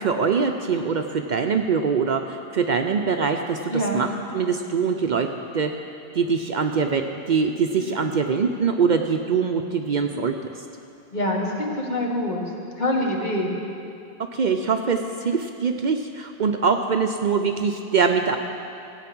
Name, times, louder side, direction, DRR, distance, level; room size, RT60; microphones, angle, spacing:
voice 1, 0.0-4.1 4.3-5.3 5.5-5.7 6.1-10.3 14.3-18.4, right 5 dB, 55° right, 5 dB, 0.7 m, -23 dB
voice 2, 3.7-4.0 7.7-7.9 10.1-10.4 11.1-12.4 12.8-13.5, left 1 dB, 45° left, -1 dB, 1.7 m, -26 dB
15.5 x 8.3 x 6.0 m, 2.6 s
omnidirectional pair, 1.0 m